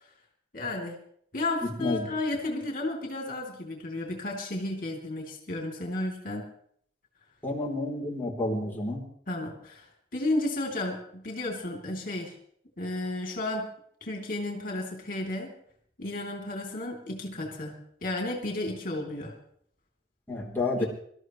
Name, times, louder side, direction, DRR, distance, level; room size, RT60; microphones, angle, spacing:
voice 1, 0.5-1.0 1.3-6.5 9.3-12.3 12.8-13.7 14.0-15.5 16.0-19.3 20.7-20.8, left 2 dB, 50° left, 0 dB, 3.1 m, -33 dB
voice 2, 1.6-2.1 7.4-9.0 20.3-20.9, left 2 dB, 10° left, -4 dB, 3.5 m, -30 dB
25.0 x 13.5 x 3.2 m, 0.65 s
head